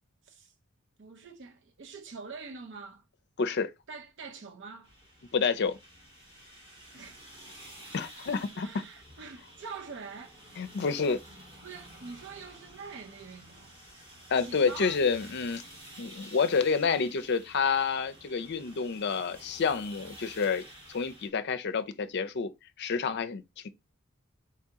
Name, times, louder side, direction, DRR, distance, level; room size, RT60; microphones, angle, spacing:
voice 1, 0.2-0.5 1.0-3.0 3.9-4.9 6.9-7.5 7.8-7.9 8.6-10.4 11.6-13.8 14.4-15.0, right 5 dB, 60° right, 0.6 m, -45 dB
voice 2, 3.4-3.7 5.3-5.8 7.9-8.7 10.6-11.2 14.3-15.6 16.0-20.6 20.9-22.5 22.8-23.4, left 5 dB, 55° left, 0.5 m, -28 dB
sound 1, 4.8-21.3, right 1 dB, 25° right, 1.7 m, -51 dB
4.6 x 2.8 x 3.6 m
head